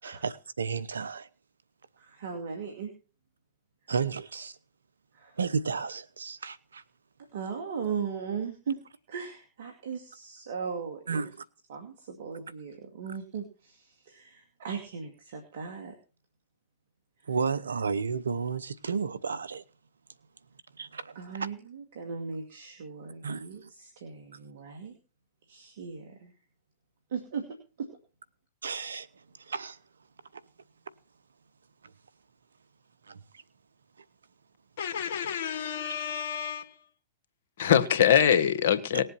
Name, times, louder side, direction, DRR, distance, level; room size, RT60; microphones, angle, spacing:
voice 1, 0.0-1.3 3.9-4.5 5.4-6.8 11.1-11.3 17.3-19.6 20.8-21.2 23.2-23.5 28.6-29.1 29.5-29.8 33.1-33.2, right 5 dB, 85° right, 0.9 m, -32 dB
voice 2, 2.0-2.9 5.1-5.4 7.3-8.8 9.1-11.3 11.7-15.9 17.2-17.3 21.1-24.9 25.5-26.3 27.1-27.5 27.8-27.9, right 6 dB, 70° right, 2.4 m, -38 dB
voice 3, 34.8-36.6 37.6-39.0, left 9 dB, 65° left, 1.6 m, -24 dB
19.0 x 7.8 x 4.3 m
hypercardioid pair, 110°, 0 cm